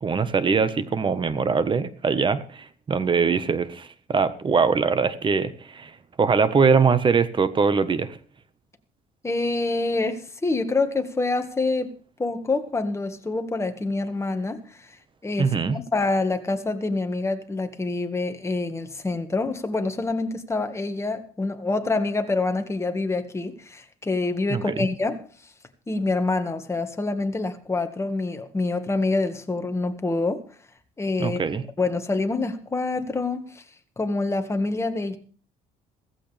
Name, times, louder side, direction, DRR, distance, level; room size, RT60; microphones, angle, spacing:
voice 1, 0.0-5.9 6.2-8.2 15.4-15.8 24.5-24.9 31.2-31.6, right 5 dB, 30° right, 1.4 m, -22 dB
voice 2, 9.2-11.9 12.2-14.6 15.2-25.2 25.9-30.4 31.0-31.4 31.8-33.6 34.0-35.2, left 3 dB, 15° left, 1.9 m, -26 dB
15.5 x 15.0 x 3.5 m
cardioid pair, 105°, 16 cm